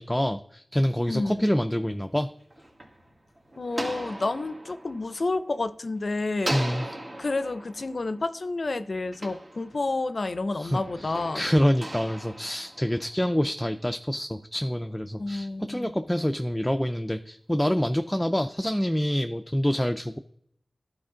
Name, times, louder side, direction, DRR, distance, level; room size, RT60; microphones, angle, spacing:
voice 1, 0.0-2.3 6.5-6.9 10.5-20.2, equal, 10° left, 8 dB, 0.4 m, -26 dB
voice 2, 1.1-1.5 3.6-6.5 7.2-11.4 15.2-15.9, left 3 dB, 65° left, 12 dB, 0.5 m, -30 dB
sound 1, 2.2-5.9 6.4-10.2 10.8-13.4, right 1 dB, 40° right, 1.5 m, -39 dB
11.0 x 4.4 x 3.8 m, 0.71 s
cardioid pair, 45°, 0 cm